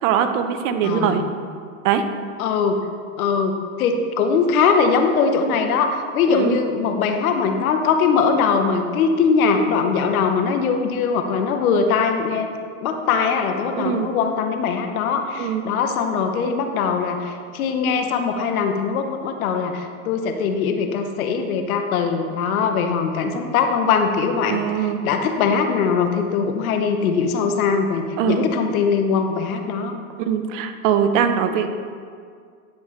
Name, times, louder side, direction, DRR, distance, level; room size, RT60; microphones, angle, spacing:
voice 1, 0.0-1.2 1.8-2.0 6.3-6.5 13.8-14.1 15.4-15.6 24.5-25.0 28.2-28.4 30.2-31.7, right 8 dB, 65° right, 8 dB, 0.9 m, -21 dB
voice 2, 0.8-1.2 2.4-2.8 3.2-12.5 12.8-29.9, left 5 dB, 85° left, 6 dB, 1.0 m, -21 dB
10.5 x 7.4 x 3.2 m, 2.1 s
supercardioid pair, 130°, 41 cm